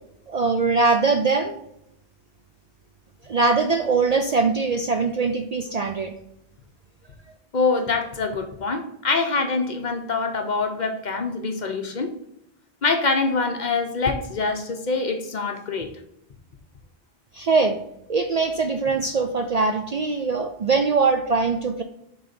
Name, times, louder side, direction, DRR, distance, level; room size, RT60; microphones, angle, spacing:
voice 1, 0.3-1.5 3.2-6.1 17.3-17.8 18.1-21.8, right 4 dB, 55° right, 5 dB, 0.5 m, -22 dB
voice 2, 7.5-12.1 12.8-15.9, left 4 dB, 50° left, 5 dB, 0.8 m, -25 dB
6.6 x 3.9 x 4.2 m, 0.79 s
omnidirectional pair, 1.1 m